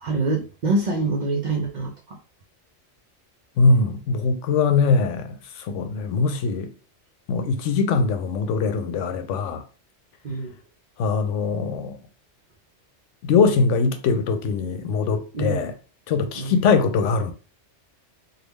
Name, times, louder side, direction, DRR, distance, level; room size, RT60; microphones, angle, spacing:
voice 1, 0.0-2.2 10.2-10.5 15.3-15.6 16.4-16.6, right 3 dB, 55° right, 0.5 m, -25 dB
voice 2, 3.6-6.7 7.3-9.6 11.0-12.0 13.2-15.7 16.1-17.3, left 4 dB, 90° left, 0.9 m, -22 dB
3.5 x 2.2 x 3.1 m
omnidirectional pair, 1.2 m